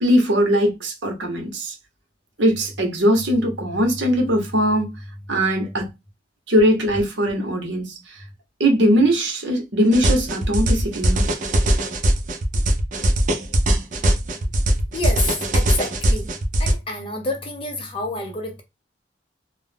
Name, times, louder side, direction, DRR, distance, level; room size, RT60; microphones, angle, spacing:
voice 1, 0.0-1.7 2.4-5.0 5.3-5.9 6.5-8.2 8.6-11.2, equal, 70° right, 0.8 m, -20 dB
sound 1, 9.9-16.7, right 1 dB, 40° right, 0.4 m, -20 dB
voice 2, 14.9-16.3 16.6-18.6, left 2 dB, 30° left, 0.5 m, -28 dB
2.3 x 2.0 x 3.2 m
head